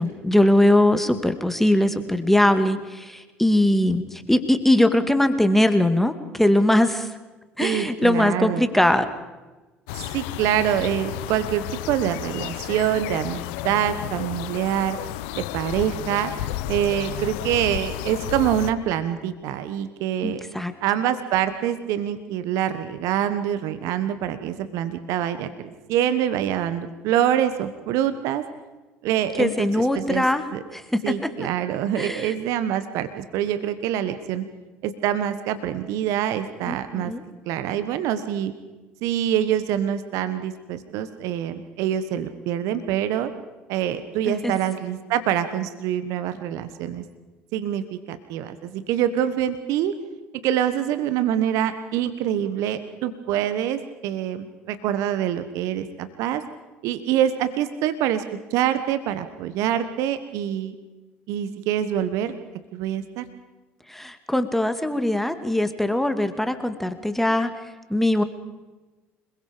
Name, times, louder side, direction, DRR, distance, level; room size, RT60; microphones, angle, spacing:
voice 1, 0.0-7.1 7.6-9.1 20.2-20.7 29.4-30.4 30.7-31.3 32.0-32.3 36.7-37.2 44.3-44.6 63.9-67.5 67.9-68.2, left 1 dB, 5° left, 9 dB, 2.1 m, -21 dB
voice 2, 7.6-8.7 10.0-15.0 15.4-16.3 16.7-20.4 20.8-28.4 29.0-30.2 30.5-30.6 31.0-34.5 34.8-37.1 37.5-38.5 39.0-43.3 43.7-47.0 47.5-49.9 50.4-56.4 56.8-58.2 58.5-60.7 61.3-62.3 62.7-63.2, right 10 dB, 65° right, 11 dB, 1.4 m, -25 dB
sound 1, 9.9-18.7, left 14 dB, 75° left, 0.8 m, -32 dB
26.5 x 22.0 x 5.2 m, 1.2 s
hypercardioid pair, 65°, 6 cm